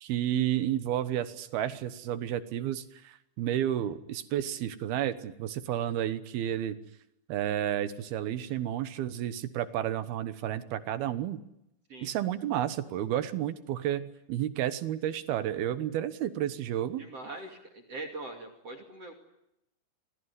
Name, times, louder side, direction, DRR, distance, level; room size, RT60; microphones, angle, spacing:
voice 1, 0.0-6.8 7.3-11.4 12.0-17.0, right 11 dB, 70° right, 12 dB, 2.6 m, -31 dB
voice 2, 17.0-19.1, right 2 dB, 40° right, 7 dB, 3.0 m, -42 dB
28.0 x 20.5 x 9.7 m, 0.84 s
omnidirectional pair, 5.4 m